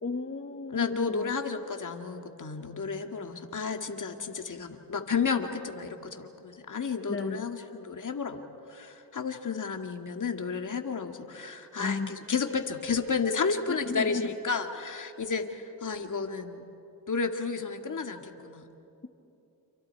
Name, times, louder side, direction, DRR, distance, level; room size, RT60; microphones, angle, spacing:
voice 1, 0.0-1.4 7.1-7.5 11.8-12.1 13.7-14.3, left 4 dB, 30° left, 5 dB, 1.4 m, -34 dB
voice 2, 0.7-8.4 8.7-16.6 17.1-18.7, left 5 dB, 45° left, 5 dB, 2.2 m, -32 dB
29.5 x 28.0 x 4.7 m, 2.9 s
cardioid pair, 60°, 41 cm